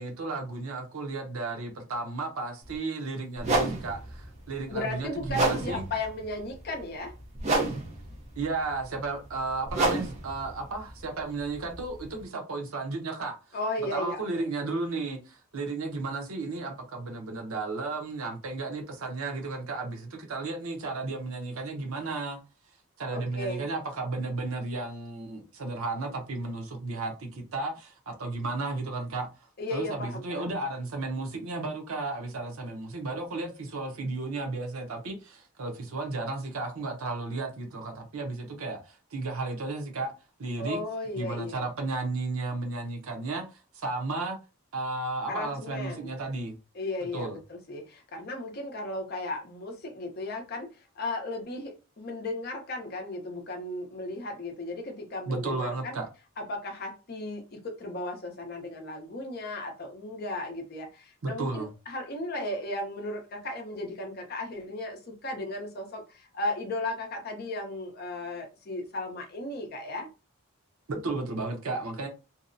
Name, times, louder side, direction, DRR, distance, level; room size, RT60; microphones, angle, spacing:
voice 1, 0.0-5.8 8.4-13.4 13.9-22.4 23.0-29.3 29.7-40.1 40.4-40.8 41.1-44.4 44.7-46.5 47.1-47.4 55.3-56.1 61.2-61.7 70.9-72.1, right 3 dB, 85° right, 0.7 m, -33 dB
sound 1, 2.6-2.8 3.4-12.2, right 2 dB, 35° right, 0.6 m, -31 dB
voice 2, 4.7-7.1 13.5-14.5 23.1-23.6 29.6-30.6 40.6-41.6 45.3-46.1 46.7-56.0 56.4-70.1, left 2 dB, 45° left, 0.6 m, -35 dB
2.6 x 2.0 x 2.5 m
head